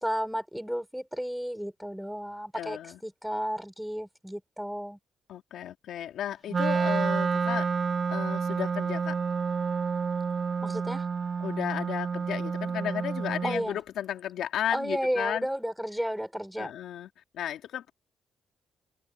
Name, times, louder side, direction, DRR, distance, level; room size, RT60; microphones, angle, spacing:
voice 1, 0.0-5.0 10.6-11.1 13.4-13.8 14.7-16.7, equal, ahead, 3.8 m, -33 dB
voice 2, 2.5-3.0 5.3-7.7 8.1-9.2 11.4-15.5 16.6-17.1 17.3-17.9, left 10 dB, 75° left, 2.4 m, -34 dB
Wind instrument woodwind instrument, 6.5-13.7, right 5 dB, 40° right, 1.4 m, -29 dB
cardioid pair, 90°, 0 cm